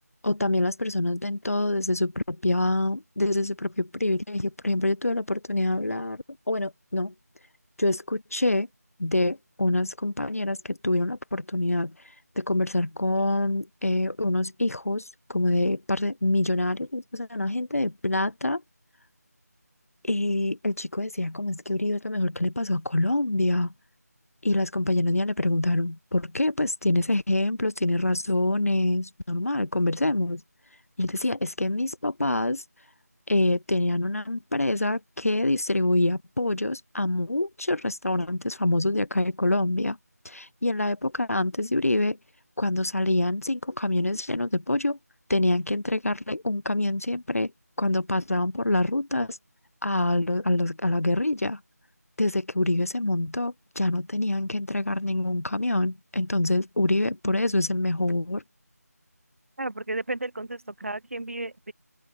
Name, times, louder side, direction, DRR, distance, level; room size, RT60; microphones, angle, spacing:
voice 1, 0.2-7.1 7.8-8.7 9.0-18.6 20.0-23.7 24.4-30.4 31.0-32.6 33.3-40.0 40.2-42.2 42.6-45.0 45.3-47.5 47.8-49.4 49.8-51.6 52.2-58.4, left 2 dB, 60° left, 1.8 m, -26 dB
voice 2, 59.6-61.7, right 2 dB, 50° right, 4.5 m, -33 dB
open air
figure-of-eight pair, 165°, 9 cm